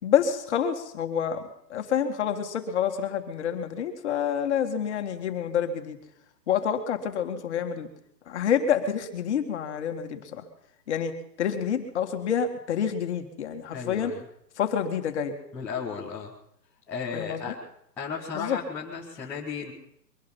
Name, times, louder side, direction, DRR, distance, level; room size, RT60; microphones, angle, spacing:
voice 1, 0.0-6.0 6.5-7.9 8.3-10.5 10.9-11.1 11.4-14.1 14.6-15.3 17.1-17.5 18.3-18.6, left 8 dB, 40° left, 6 dB, 1.9 m, -28 dB
voice 2, 13.7-14.2 15.5-16.3 16.9-17.5 18.0-19.7, left 6 dB, 5° left, -8 dB, 0.8 m, -34 dB
22.5 x 11.5 x 5.5 m, 0.75 s
hypercardioid pair, 165°, 50 cm